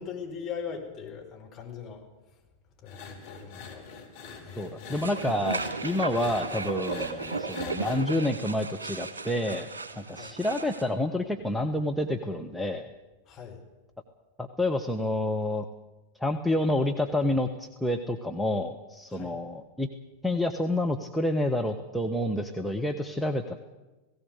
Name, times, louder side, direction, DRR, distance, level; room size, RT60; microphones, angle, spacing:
voice 1, 0.0-2.0 2.8-3.9 4.4-5.0 10.1-10.3 13.3-13.6 19.1-19.4, left 6 dB, 30° left, 0 dB, 5.3 m, -40 dB
sound 1, 2.9-8.0, left 5 dB, 55° left, 4.3 m, -43 dB
voice 2, 4.6-9.7 10.0-12.9 14.4-15.7 16.2-19.9 20.2-23.6, left 1 dB, ahead, 2 dB, 1.2 m, -28 dB
sound 2, 4.9-10.9, right 4 dB, 70° right, 1.8 m, -35 dB
18.0 x 17.0 x 8.4 m, 1.1 s
figure-of-eight pair, 90°, 0 cm